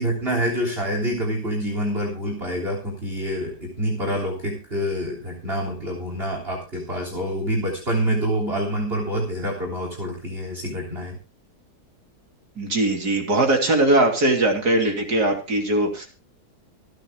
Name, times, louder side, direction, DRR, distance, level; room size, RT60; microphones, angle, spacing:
voice 1, 0.0-11.2, equal, 35° right, 0 dB, 3.7 m, -26 dB
voice 2, 12.6-16.1, right 2 dB, 75° right, 4 dB, 3.6 m, -20 dB
26.0 x 9.5 x 2.3 m, 0.30 s
omnidirectional pair, 1.7 m